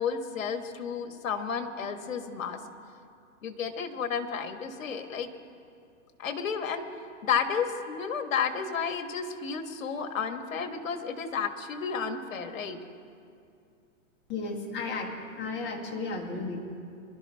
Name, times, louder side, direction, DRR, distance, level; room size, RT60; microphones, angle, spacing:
voice 1, 0.0-2.6 3.4-5.3 6.2-6.9 7.2-12.8, left 6 dB, 75° left, 7 dB, 1.6 m, -32 dB
voice 2, 14.3-16.6, left 3 dB, 25° left, 1 dB, 2.1 m, -34 dB
24.0 x 12.0 x 3.5 m, 2.4 s
hypercardioid pair, 125°, 40 cm